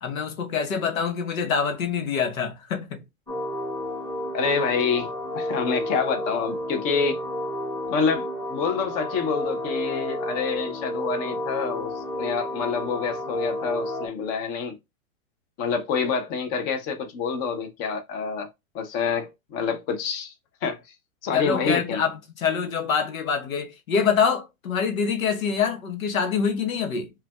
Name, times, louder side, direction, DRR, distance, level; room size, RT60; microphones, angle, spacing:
voice 1, 0.0-3.0 21.3-27.1, left 6 dB, 80° left, 1.1 m, -25 dB
sound 1, 3.3-14.1, left 1 dB, 5° left, 0.9 m, -31 dB
voice 2, 4.3-7.2 7.9-14.8 15.6-18.5 18.7-20.3 20.6-20.8 21.2-22.0, left 5 dB, 20° left, 0.6 m, -27 dB
5.5 x 2.3 x 2.3 m
hypercardioid pair, 145°, 41 cm